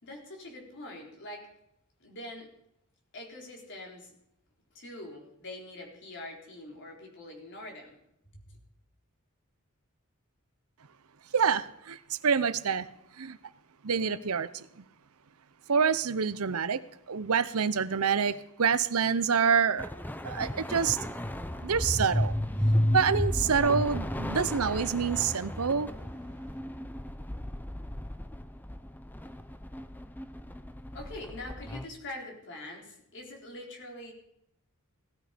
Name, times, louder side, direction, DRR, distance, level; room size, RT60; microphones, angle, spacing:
voice 1, 0.0-1.5 2.0-2.5 3.1-4.1 4.7-8.0 8.3-8.4 30.9-34.1, left 1 dB, 55° left, 1 dB, 4.0 m, -44 dB
voice 2, 11.3-12.9 13.2-13.4 13.8-14.8 15.7-16.8 17.1-19.9 20.2-21.0 21.6-22.4 22.9-25.9, right 6 dB, 75° right, 14 dB, 0.8 m, -27 dB
sound 1, 19.8-31.9, left 1 dB, 10° left, 0.7 m, -33 dB
17.5 x 13.0 x 5.2 m, 0.78 s
head